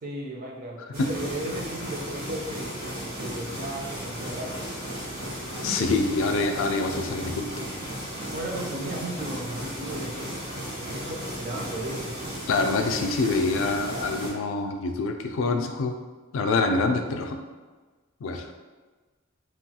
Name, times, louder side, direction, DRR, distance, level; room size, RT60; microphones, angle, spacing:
voice 1, 0.0-4.8 5.5-6.0 8.3-10.3 10.8-12.3, right 1 dB, 45° right, -1 dB, 0.5 m, -35 dB
sound 1, 0.9-14.3, equal, 90° right, 1.2 m, -35 dB
voice 2, 5.6-7.5 12.5-15.9 16.3-17.4 18.2-18.5, left 3 dB, 70° left, 5 dB, 0.3 m, -25 dB
3.0 x 2.2 x 2.8 m, 1.3 s
head